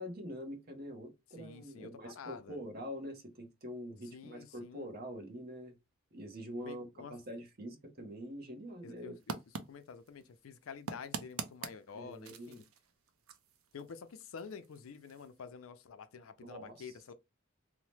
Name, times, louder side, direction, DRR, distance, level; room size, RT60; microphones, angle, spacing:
voice 1, 0.0-5.8 6.1-9.2 11.9-12.6 16.4-16.9, equal, 50° right, 0.8 m, -45 dB
voice 2, 1.4-2.6 4.1-4.9 6.6-7.1 8.8-9.4 9.7-12.6 13.7-17.1, left 6 dB, 80° left, 0.4 m, -49 dB
sound 1, 9.2-15.4, right 5 dB, 85° right, 0.5 m, -47 dB
2.8 x 2.1 x 3.2 m
head